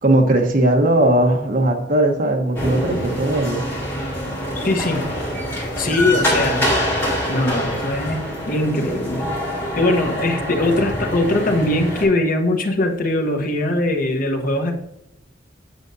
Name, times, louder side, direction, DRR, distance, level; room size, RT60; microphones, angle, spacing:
voice 1, 0.0-3.6, right 1 dB, 50° right, 3 dB, 1.1 m, -18 dB
sound 1, 2.5-12.0, equal, 15° left, 3.1 m, -25 dB
voice 2, 4.5-5.0 5.8-6.7 7.3-9.3 9.7-14.7, left 2 dB, 50° left, 4 dB, 1.0 m, -21 dB
8.1 x 7.9 x 2.7 m, 0.83 s
head